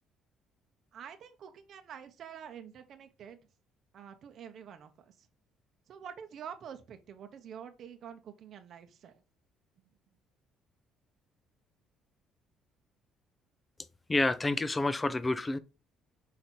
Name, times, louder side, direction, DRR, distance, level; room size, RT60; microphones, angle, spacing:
voice 1, 0.9-3.4 3.9-5.3 5.9-9.2 9.8-9.9, right 8 dB, 50° right, 0.8 m, -47 dB
voice 2, 14.1-15.6, left 2 dB, 15° left, 0.5 m, -28 dB
5.1 x 4.2 x 4.4 m
cardioid pair, 150°, 0 cm